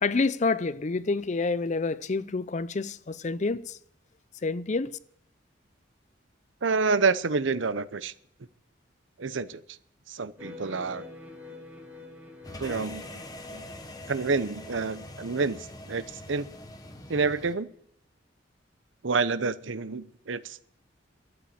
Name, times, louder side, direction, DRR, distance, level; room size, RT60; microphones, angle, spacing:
voice 1, 0.0-3.8 4.4-5.0, left 3 dB, 35° left, 0.5 m, -28 dB
voice 2, 6.6-8.1 9.2-9.6 10.1-11.0 12.6-13.0 13.5-13.6 14.1-16.5 17.1-17.7 19.0-20.6, right 4 dB, 75° right, 0.7 m, -28 dB
sound 1, 10.4-17.1, left 2 dB, 10° right, 2.7 m, -49 dB
sound 2, 12.4-17.6, left 1 dB, 20° left, 1.2 m, -43 dB
13.0 x 8.7 x 8.5 m
head